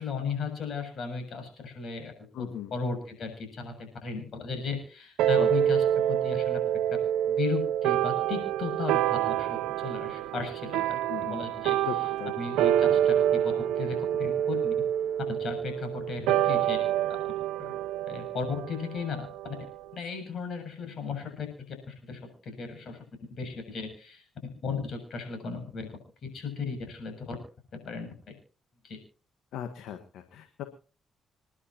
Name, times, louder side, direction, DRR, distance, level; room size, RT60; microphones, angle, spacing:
voice 1, 0.0-2.1 2.4-2.5 2.7-5.8 6.1-6.6 7.3-11.0 11.3-11.8 12.4-13.4 13.8-14.7 15.3-16.8 17.6-17.7 18.1-19.3 19.9-21.5 21.9-23.0 23.3-24.2 24.6-25.9 26.2-27.4 27.7-28.4 28.8-29.0, left 5 dB, 65° left, 6 dB, 7.3 m, -35 dB
voice 2, 2.3-2.7 5.4-5.5 11.1-11.4 11.8-12.3 29.5-30.6, left 9 dB, 85° left, 7 dB, 1.4 m, -37 dB
sound 1, 5.2-19.9, right 11 dB, 85° right, 0.6 m, -27 dB
28.5 x 11.0 x 2.9 m, 0.38 s
supercardioid pair, 60°, 0 cm